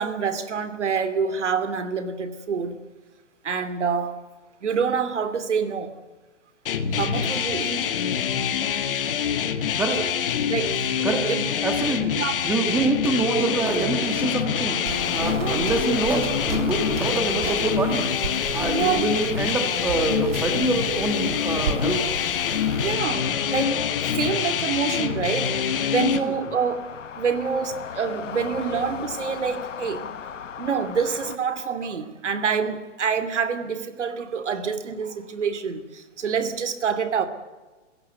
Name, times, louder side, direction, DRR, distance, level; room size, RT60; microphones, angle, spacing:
voice 1, 0.0-2.8 3.4-4.2 4.6-5.9 6.9-7.9 10.5-11.5 12.2-12.3 15.4-15.7 18.7-19.0 22.8-23.8 24.1-26.9 27.2-30.1 30.6-37.3, right 6 dB, 70° right, 2.8 m, -27 dB
sound 1, 6.7-26.2, left 8 dB, 45° left, 1.9 m, -26 dB
voice 2, 9.8-10.1 11.0-11.3 11.6-12.1 12.4-14.8 15.1-18.1 18.5-22.0 26.0-26.3, right 3 dB, 5° right, 1.7 m, -26 dB
sound 2, 13.1-31.4, left 7 dB, 80° left, 1.5 m, -38 dB
sound 3, 14.9-22.9, right 6 dB, 55° right, 3.3 m, -34 dB
27.0 x 16.0 x 8.1 m
hypercardioid pair, 160°, 37 cm